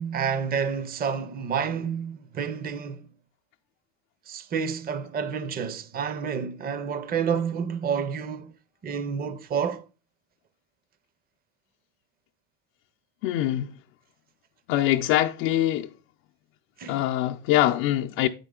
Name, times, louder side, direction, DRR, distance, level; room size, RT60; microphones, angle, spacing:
voice 1, 0.0-3.0 4.3-8.5 8.8-9.8 16.8-17.0, right 6 dB, 25° right, 0.5 m, -29 dB
voice 2, 13.2-13.7 14.7-15.9 16.9-18.3, left 13 dB, 80° left, 0.6 m, -23 dB
8.3 x 5.2 x 3.7 m
cardioid pair, 130°, 39 cm